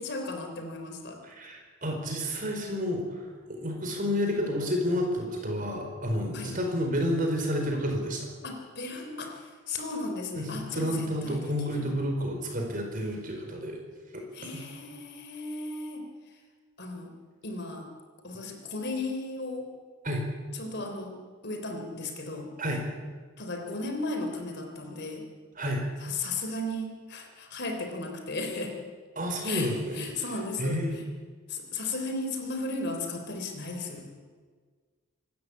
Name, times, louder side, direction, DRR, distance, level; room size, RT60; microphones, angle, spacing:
voice 1, 0.0-1.2 6.3-6.6 8.4-11.5 11.8-11.9 14.3-16.1 16.8-17.1 17.4-17.9 18.2-19.7 20.5-21.1 21.4-22.5 23.4-25.3 26.0-28.7 29.4-30.8 31.5-34.1, left 2 dB, 50° left, 4 dB, 3.6 m, -35 dB
voice 2, 1.2-8.3 10.3-13.8 14.1-14.6 20.0-20.2 22.6-22.8 25.6-25.8 29.2-30.0 30.6-31.0, equal, 40° right, 2 dB, 4.5 m, -30 dB
26.0 x 13.0 x 8.5 m, 1.5 s
head